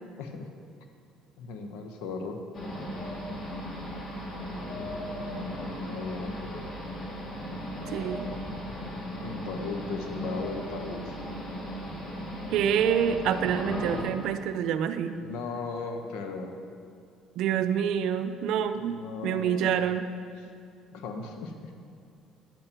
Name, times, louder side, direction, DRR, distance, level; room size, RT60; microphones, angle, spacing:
voice 1, 0.2-0.5 1.4-2.4 5.8-6.8 9.2-11.2 15.1-16.6 18.7-19.7 20.9-21.7, left 4 dB, 80° left, 5 dB, 0.9 m, -37 dB
sound 1, 2.5-14.0, equal, 50° left, 2.2 m, -36 dB
voice 2, 7.9-8.3 12.5-15.2 17.4-20.1, right 8 dB, 70° right, 11 dB, 0.4 m, -27 dB
10.0 x 8.7 x 2.9 m, 2.5 s
supercardioid pair, 85°, 0 cm